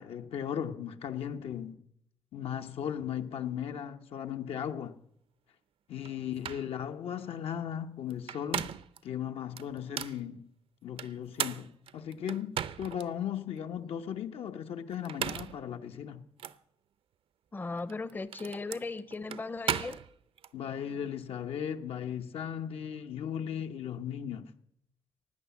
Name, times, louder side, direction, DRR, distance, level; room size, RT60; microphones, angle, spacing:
voice 1, 0.0-1.8 2.3-5.0 5.9-8.7 9.0-10.5 10.8-16.3 20.5-24.5, left 9 dB, 85° left, 0.9 m, -37 dB
sound 1, 6.0-6.1 6.4-6.7 8.1-9.0 9.6-10.2 11.0-13.1 13.6-13.7 14.9-15.6 16.4-16.6 17.8-20.5, right 9 dB, 70° right, 0.6 m, -36 dB
voice 2, 17.5-20.0, left 3 dB, 20° left, 0.5 m, -37 dB
17.0 x 9.5 x 7.1 m
wide cardioid pair, 130°, 10 cm